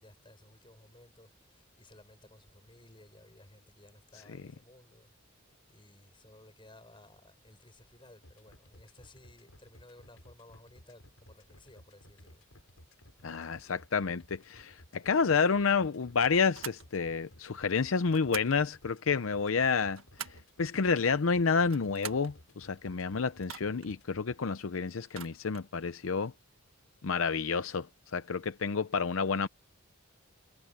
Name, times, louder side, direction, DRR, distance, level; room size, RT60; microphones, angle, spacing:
voice 1, 0.0-5.1 5.7-12.4, left 1 dB, 25° left, 6.4 m, -57 dB
sound 1, 8.2-24.4, left 1 dB, 85° left, 7.1 m, -57 dB
voice 2, 13.2-20.0 20.6-26.3 27.0-27.9 28.1-29.5, left 5 dB, 70° left, 0.6 m, -29 dB
sound 2, 16.5-16.9 18.1-18.6 19.7-20.5 21.6-22.3 23.4-23.9 25.0-25.7, right 8 dB, 75° right, 1.7 m, -44 dB
head